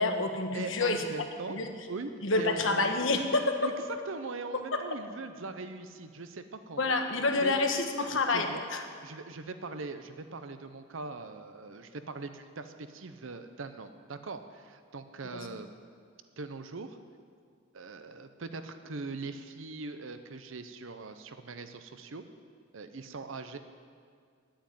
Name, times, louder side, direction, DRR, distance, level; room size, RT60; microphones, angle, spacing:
voice 1, 0.0-1.1 1.5-1.7 2.2-3.7 4.7-4.8 6.8-8.8 15.3-15.4, left 3 dB, 70° left, 5 dB, 1.2 m, -28 dB
voice 2, 0.5-1.6 1.9-2.1 2.4-2.8 3.6-3.7 4.1-7.0 7.4-7.6 8.3-8.6 9.0-15.7 16.4-17.0 17.7-22.2 22.7-23.6, right 3 dB, 70° right, 9 dB, 0.7 m, -41 dB
9.7 x 8.9 x 9.2 m, 2.1 s
head